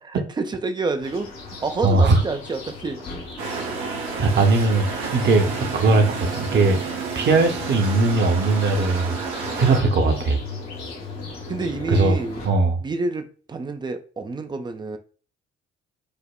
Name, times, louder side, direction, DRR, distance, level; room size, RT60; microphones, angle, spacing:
voice 1, 0.0-3.0 11.5-12.4 12.8-15.0, right 3 dB, 15° right, 0.3 m, -28 dB
sound 1, 1.0-12.5, left 3 dB, 65° left, 1.0 m, -37 dB
voice 2, 1.8-2.2 4.2-6.0 6.4-6.8 7.2-9.2 9.5-10.4 11.9-12.2 12.4-12.8, right 3 dB, 35° right, 0.7 m, -19 dB
sound 2, 3.4-9.8, right 5 dB, 75° right, 0.7 m, -31 dB
4.9 x 2.1 x 2.2 m
figure-of-eight pair, 45°, 32 cm